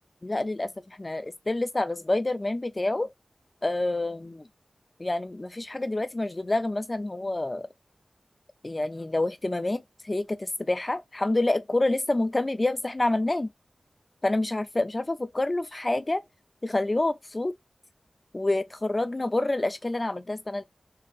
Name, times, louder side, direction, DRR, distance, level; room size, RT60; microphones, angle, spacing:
voice 1, 0.2-3.1 3.6-4.5 5.0-7.7 8.6-13.5 14.2-16.2 16.6-17.5 18.3-20.6, left 2 dB, 30° left, 0.5 m, -27 dB
4.1 x 2.6 x 3.7 m
wide cardioid pair, 95°, 0 cm